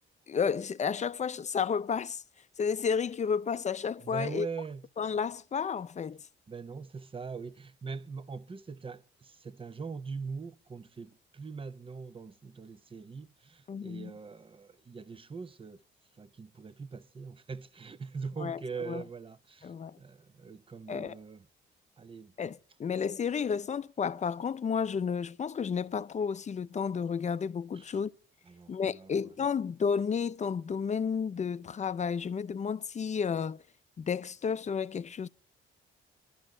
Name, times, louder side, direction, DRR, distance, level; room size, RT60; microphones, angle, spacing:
voice 1, 0.3-2.2 2.6-4.5 5.0-6.2 13.7-14.1 18.4-18.6 18.8-19.0 19.6-20.0 20.9-21.1 22.4-28.1 28.7-33.6 34.0-35.3, left 6 dB, 35° left, 0.6 m, -32 dB
voice 2, 4.0-4.8 6.5-15.8 16.2-19.7 20.0-21.5 22.0-22.3 27.7-28.0 28.5-29.3, right 5 dB, 25° right, 0.8 m, -42 dB
23.0 x 12.0 x 3.8 m
cardioid pair, 90°, 20 cm